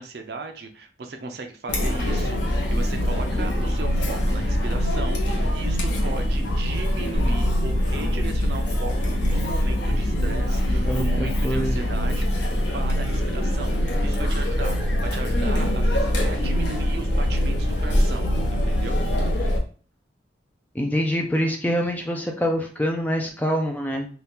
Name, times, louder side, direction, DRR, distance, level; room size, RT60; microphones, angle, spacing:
voice 1, 0.0-19.2, right 3 dB, 60° right, 5 dB, 0.5 m, -36 dB
Chatter, 1.7-19.6, equal, 75° left, 0.8 m, -23 dB
voice 2, 10.8-11.8 20.7-24.1, equal, 10° left, 2 dB, 0.4 m, -25 dB
2.8 x 2.3 x 3.4 m, 0.41 s
head